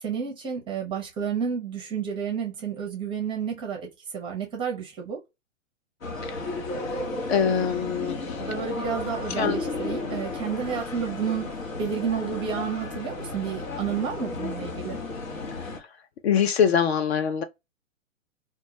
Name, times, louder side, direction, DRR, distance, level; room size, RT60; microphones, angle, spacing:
voice 1, 0.0-5.2 8.4-15.0, right 7 dB, 15° right, 0.5 m, -31 dB
sound 1, 6.0-15.8, left 3 dB, 85° left, 1.0 m, -33 dB
voice 2, 7.3-8.4 9.4-9.6 15.6-15.7 16.2-17.4, left 7 dB, 55° left, 0.4 m, -24 dB
2.2 x 2.1 x 2.7 m
hypercardioid pair, 120°, 39 cm